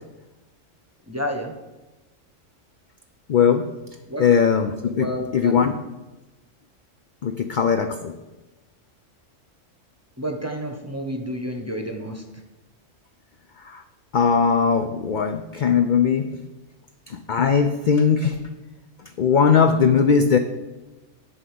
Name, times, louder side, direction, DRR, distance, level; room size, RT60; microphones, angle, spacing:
voice 1, 1.1-1.5 4.1-4.3 4.9-5.5 10.2-12.2, equal, 15° right, 3 dB, 0.9 m, -30 dB
voice 2, 3.3-3.7 4.2-5.7 7.2-8.1 13.6-13.8 14.1-16.3 17.1-18.4 19.2-20.4, left 6 dB, 55° left, 8 dB, 0.5 m, -19 dB
11.0 x 3.9 x 7.7 m, 1.1 s
omnidirectional pair, 1.3 m